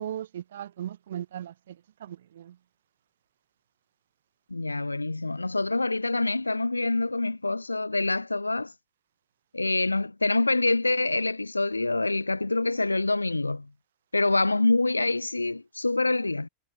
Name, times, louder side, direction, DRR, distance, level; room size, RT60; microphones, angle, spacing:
voice 1, 0.0-2.6, right 10 dB, 60° right, 0.8 m, -38 dB
voice 2, 4.5-8.7 9.5-13.7 14.1-16.5, left 2 dB, 80° left, 0.3 m, -26 dB
figure-of-eight pair, 90°, 0 cm